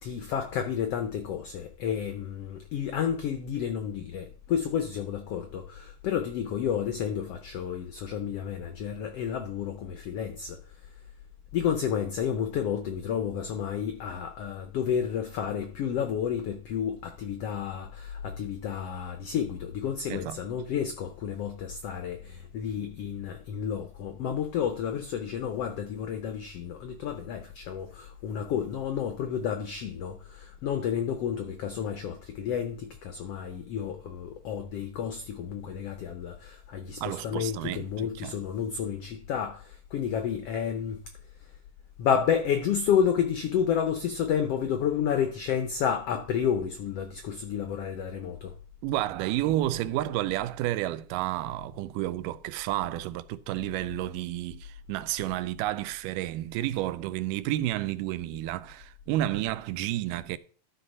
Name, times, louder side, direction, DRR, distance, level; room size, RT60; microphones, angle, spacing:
voice 1, 0.0-10.6 11.5-41.0 42.0-48.5, left 8 dB, 90° left, 1.3 m, -31 dB
voice 2, 37.0-38.4 48.8-60.4, right 15 dB, 85° right, 2.1 m, -31 dB
12.5 x 4.3 x 5.3 m
omnidirectional pair, 3.8 m